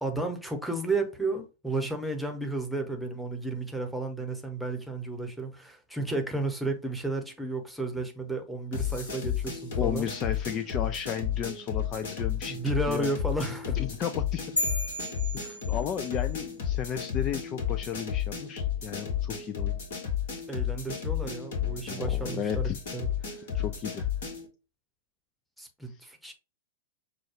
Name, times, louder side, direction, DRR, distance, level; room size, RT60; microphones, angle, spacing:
voice 1, 0.0-10.1 12.5-13.9 15.4-15.6 20.5-23.5 25.6-26.3, right 2 dB, ahead, 1.0 m, -33 dB
sound 1, 8.7-24.5, left 9 dB, 55° left, 1.5 m, -32 dB
voice 2, 9.8-12.6 12.9-13.1 13.7-14.4 15.7-19.8 21.9-22.8 23.5-24.1, left 9 dB, 30° left, 0.3 m, -34 dB
sound 2, 14.6-16.3, left 1 dB, 80° left, 1.4 m, -33 dB
6.0 x 2.3 x 3.1 m
figure-of-eight pair, 100°, 0 cm